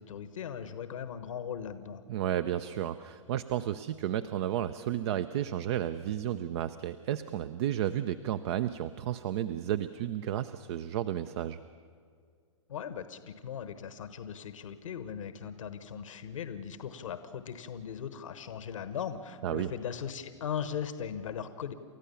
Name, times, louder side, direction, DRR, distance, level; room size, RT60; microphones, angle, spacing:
voice 1, 0.0-2.0 12.7-21.7, left 8 dB, 75° left, 11 dB, 1.2 m, -39 dB
voice 2, 2.1-11.6 19.4-19.7, right 11 dB, 55° right, 12 dB, 0.7 m, -32 dB
29.5 x 14.0 x 7.0 m, 2.1 s
hypercardioid pair, 115°, 17 cm